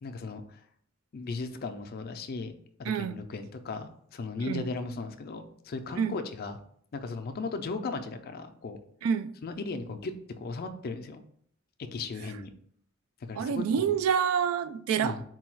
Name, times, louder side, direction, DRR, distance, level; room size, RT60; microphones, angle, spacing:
voice 1, 0.0-0.6 1.1-6.6 6.9-8.8 9.4-11.2 11.8-12.5 13.2-14.0 15.0-15.2, left 3 dB, 45° left, 0.4 m, -37 dB
voice 2, 2.9-3.2 4.4-4.6 6.0-6.2 9.0-9.3 13.4-15.2, right 7 dB, 70° right, 0.3 m, -27 dB
4.0 x 2.3 x 4.4 m
head